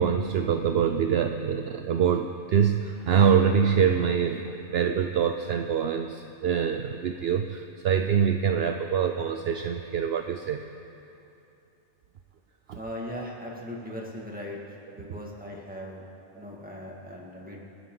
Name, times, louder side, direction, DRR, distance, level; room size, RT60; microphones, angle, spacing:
voice 1, 0.0-10.6 12.7-12.8, right 7 dB, 65° right, 6 dB, 0.8 m, -25 dB
voice 2, 12.7-16.0 16.3-17.6, equal, 5° right, -3 dB, 2.1 m, -39 dB
27.5 x 10.0 x 3.9 m, 2.7 s
omnidirectional pair, 1.2 m